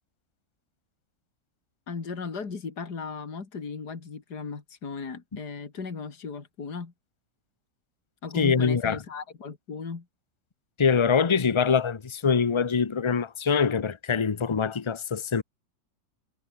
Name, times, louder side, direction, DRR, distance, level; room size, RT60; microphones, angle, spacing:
voice 1, 1.9-6.9 8.2-10.1, left 5 dB, 65° left, 3.2 m, -36 dB
voice 2, 8.4-9.0 10.8-15.4, left 6 dB, 30° left, 0.5 m, -24 dB
omnidirectional pair, 1.9 m